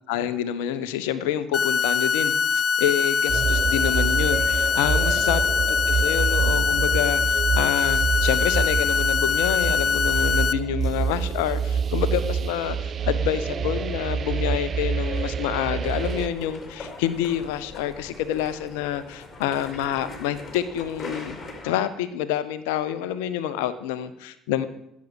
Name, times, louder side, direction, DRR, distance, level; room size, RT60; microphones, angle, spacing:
voice 1, 0.1-21.4 21.6-24.7, left 11 dB, 65° left, 14 dB, 0.8 m, -28 dB
sound 1, 1.5-10.5, left 6 dB, 45° left, 0.5 m, -23 dB
sound 2, 3.3-16.3, right 6 dB, 40° right, 0.6 m, -27 dB
sound 3, 15.8-21.7, left 2 dB, 25° left, 5.1 m, -40 dB
15.5 x 8.4 x 6.3 m, 0.79 s
figure-of-eight pair, 50°, 0 cm